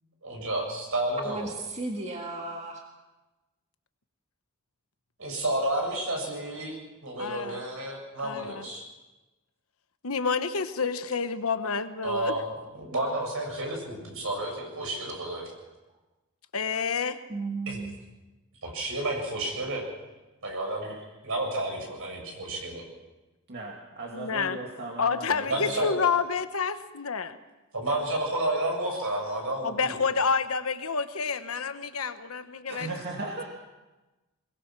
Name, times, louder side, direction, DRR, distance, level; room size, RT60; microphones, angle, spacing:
voice 1, 0.2-1.5 5.2-8.8 12.0-15.5 17.7-17.9 18.6-19.8 20.4-20.9 21.2-22.8 25.5-26.1 27.7-30.0, right 1 dB, 70° right, 1 dB, 7.3 m, -31 dB
voice 2, 1.3-2.8 17.3-17.9, right 3 dB, 30° right, 1 dB, 1.8 m, -34 dB
voice 3, 7.2-7.7 8.2-8.7 10.0-12.4 16.5-17.2 24.1-24.6 25.0-27.4 29.6-33.0, left 5 dB, 70° left, 10 dB, 1.2 m, -29 dB
voice 4, 23.5-25.7 32.7-33.5, right 2 dB, 50° right, -1 dB, 2.5 m, -37 dB
22.5 x 21.5 x 6.1 m, 1.1 s
head